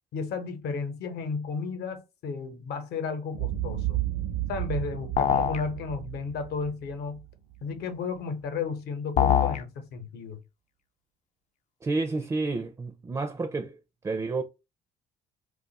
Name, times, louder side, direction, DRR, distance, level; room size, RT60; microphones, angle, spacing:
voice 1, 0.1-4.0 4.5-7.2 7.6-10.4, left 5 dB, 70° left, 0.9 m, -33 dB
Boom, 3.3-7.6, right 14 dB, 60° right, 0.6 m, -33 dB
sound 1, 5.2-5.6 9.2-9.6, left 8 dB, 45° left, 0.4 m, -22 dB
voice 2, 11.8-13.8 14.0-14.4, right 3 dB, 20° right, 0.4 m, -30 dB
2.4 x 2.4 x 3.9 m
cardioid pair, 110°, 17 cm